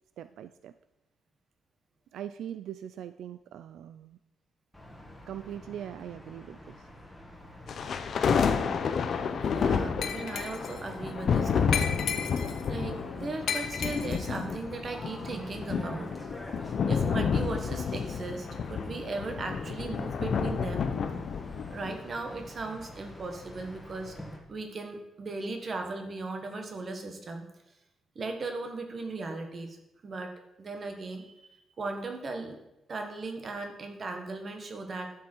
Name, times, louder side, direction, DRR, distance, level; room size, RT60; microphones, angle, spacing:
voice 1, 0.2-0.7 2.1-4.2 5.3-6.9, right 10 dB, 80° right, 12 dB, 0.3 m, -41 dB
sound 1, 4.7-24.4, left 1 dB, 5° left, 1.8 m, -46 dB
sound 2, 7.7-22.0, left 6 dB, 45° left, 0.7 m, -30 dB
voice 2, 9.4-12.3 12.7-16.1 16.6-20.9 21.7-24.1 24.5-27.5 28.1-29.8 30.0-31.5 31.8-32.6 32.9-35.1, right 3 dB, 35° right, 5 dB, 1.4 m, -37 dB
Glass, 10.0-10.8 11.7-12.7 13.5-14.4, left 8 dB, 65° left, 1.1 m, -33 dB
11.5 x 7.7 x 4.6 m, 0.91 s
cardioid pair, 170°, 0 cm